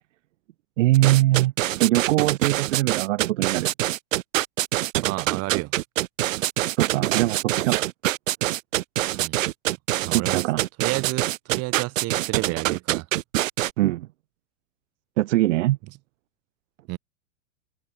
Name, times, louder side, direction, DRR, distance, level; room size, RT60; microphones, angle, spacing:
voice 1, 0.8-1.5 1.8-3.7 6.8-7.9 10.1-10.6 13.8-14.1 15.2-15.8, right 16 dB, 70° right, 1.5 m, -22 dB
sound 1, 0.9-13.7, right 15 dB, 85° right, 0.9 m, -25 dB
voice 2, 5.0-5.7 9.1-9.4 10.0-10.4 10.8-13.1 16.9-17.0, right 22 dB, 40° right, 4.6 m, -30 dB
supercardioid pair, 145°, 38 cm